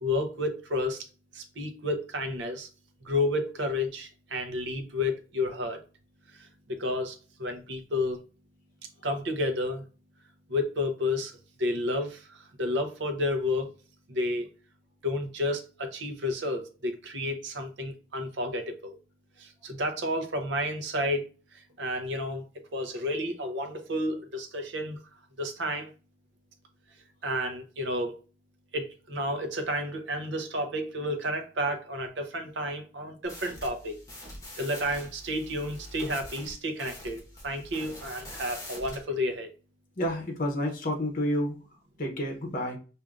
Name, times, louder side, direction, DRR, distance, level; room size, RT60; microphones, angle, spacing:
voice 1, 0.0-1.0 1.3-2.7 3.0-5.8 6.3-8.2 9.0-9.8 10.5-13.7 14.1-14.5 15.0-19.0 19.4-21.3 21.5-25.0 25.4-25.9 27.2-28.1 28.7-34.0 34.6-39.5, left 1 dB, 60° right, 0.7 m, -31 dB
sound 1, 33.2-39.0, left 1 dB, 15° left, 1.1 m, -44 dB
voice 2, 40.0-41.6 42.0-42.8, equal, 40° left, 0.8 m, -29 dB
4.8 x 2.6 x 2.4 m
head